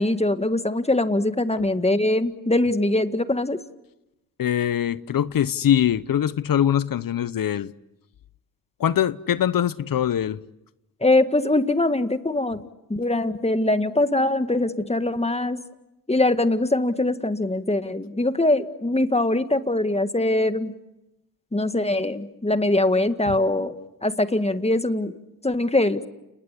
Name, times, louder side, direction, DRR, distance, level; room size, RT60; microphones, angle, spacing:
voice 1, 0.0-3.6 11.0-12.6 12.9-15.6 16.1-20.7 21.5-23.8 24.0-25.1 25.4-26.0, left 2 dB, 15° left, 1.8 m, -22 dB
voice 2, 4.4-7.7 8.8-10.4, left 10 dB, 60° left, 0.9 m, -22 dB
30.0 x 20.0 x 8.4 m
supercardioid pair, 55°, 39 cm